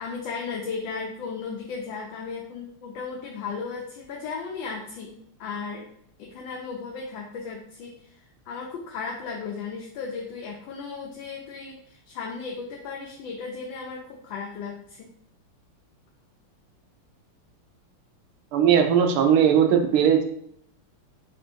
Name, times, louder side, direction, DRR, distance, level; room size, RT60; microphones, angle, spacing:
voice 1, 0.0-5.9 6.2-8.2 8.5-15.1, left 5 dB, 70° left, -2 dB, 1.3 m, -35 dB
voice 2, 18.5-20.2, right 8 dB, 80° right, 5 dB, 1.5 m, -19 dB
4.2 x 2.5 x 4.4 m, 0.71 s
omnidirectional pair, 2.4 m